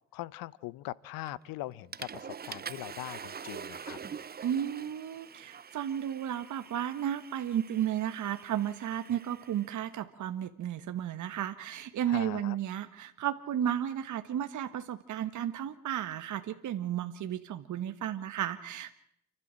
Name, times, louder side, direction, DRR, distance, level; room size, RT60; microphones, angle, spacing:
voice 1, 0.1-4.0 12.1-12.6, left 17 dB, 75° left, 21 dB, 0.8 m, -41 dB
Water / Toilet flush, 1.3-1.5 1.9-9.8, right 7 dB, 30° right, 0.7 m, -45 dB
voice 2, 4.4-18.9, right 10 dB, 55° right, 9 dB, 1.4 m, -33 dB
29.5 x 12.0 x 7.6 m, 0.70 s
supercardioid pair, 65°, 35 cm